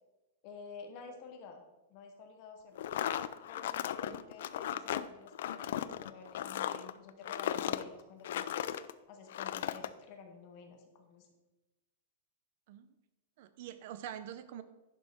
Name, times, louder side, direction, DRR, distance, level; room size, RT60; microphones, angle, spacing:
voice 1, 0.4-1.6 1.9-2.9 3.5-8.8 9.1-11.3, left 5 dB, 35° left, 4 dB, 1.1 m, -51 dB
sound 1, 2.8-8.9 9.3-9.9, left 11 dB, 60° left, 0.4 m, -36 dB
voice 2, 13.4-14.6, right 10 dB, 45° right, 12 dB, 0.6 m, -45 dB
11.0 x 5.4 x 4.5 m, 1.1 s
supercardioid pair, 175°, 0 cm